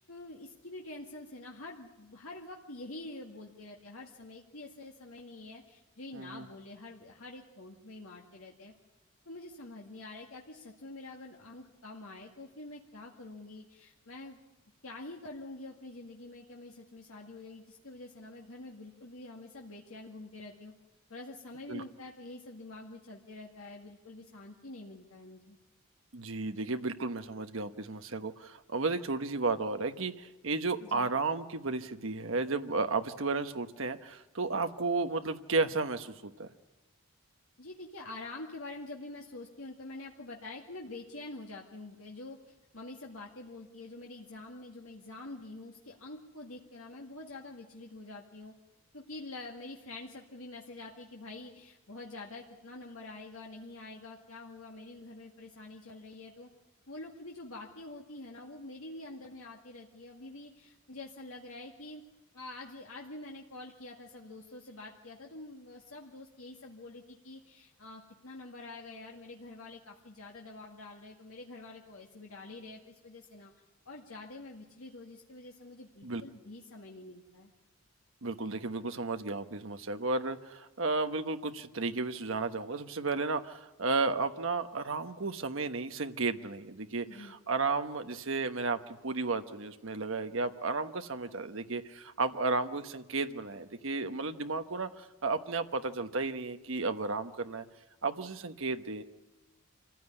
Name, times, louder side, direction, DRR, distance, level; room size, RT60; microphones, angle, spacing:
voice 1, 0.0-8.7 9.3-14.4 14.8-20.7 21.1-25.6 30.8-31.1 37.6-48.5 48.9-56.5 56.9-62.0 62.3-73.5 73.9-77.5 87.1-87.4, left 2 dB, 75° left, 0 dB, 2.1 m, -46 dB
voice 2, 6.1-6.4 21.7-21.8 26.1-36.5 76.0-76.2 78.2-97.6 98.0-99.0, right 3 dB, 65° right, 8 dB, 1.1 m, -33 dB
26.0 x 15.5 x 9.9 m, 1.0 s
head